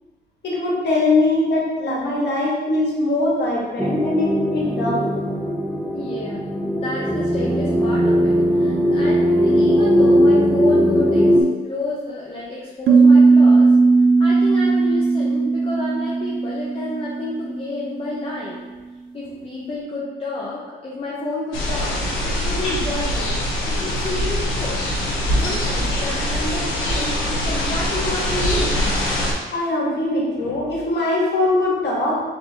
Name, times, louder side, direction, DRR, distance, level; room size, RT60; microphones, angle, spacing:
voice 1, 0.4-5.1 24.0-24.1 29.5-32.2, left 2 dB, 60° left, -4 dB, 1.4 m, -21 dB
sound 1, 3.8-11.4, equal, 5° right, 0.5 m, -18 dB
voice 2, 5.9-13.7 14.2-18.7 19.1-24.8 25.2-28.8 31.6-31.7, left 2 dB, 30° left, -5 dB, 0.8 m, -30 dB
sound 2, 12.9-17.7, right 4 dB, 70° right, 0.6 m, -16 dB
sound 3, 21.5-29.3, left 1 dB, 80° left, 1.0 m, -23 dB
3.9 x 3.8 x 2.9 m, 1.2 s
cardioid pair, 90°, 20 cm